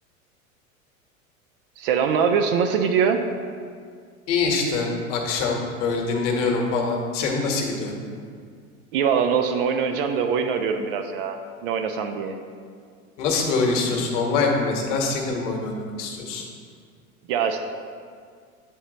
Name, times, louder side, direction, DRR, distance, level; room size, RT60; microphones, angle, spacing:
voice 1, 1.8-3.2 8.9-12.4 17.3-17.6, right 6 dB, 45° right, 6 dB, 0.4 m, -23 dB
voice 2, 4.3-7.9 13.2-16.4, left 4 dB, 55° left, 1 dB, 1.2 m, -24 dB
9.0 x 3.0 x 3.9 m, 2.1 s
figure-of-eight pair, 85°, 43 cm